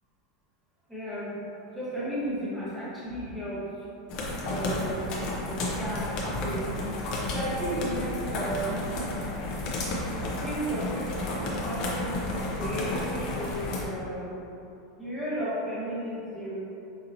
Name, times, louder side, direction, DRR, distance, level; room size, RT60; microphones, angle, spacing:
voice 1, 0.9-1.4 1.7-3.8 4.5-5.2 5.5-6.8 7.3-9.0 10.4-14.5 14.9-16.7, right 1 dB, ahead, -11 dB, 0.9 m, -34 dB
sound 1, 4.1-13.8, left 1 dB, 30° left, 0.5 m, -32 dB
5.2 x 2.8 x 2.6 m, 2.7 s
supercardioid pair, 175°, 2 cm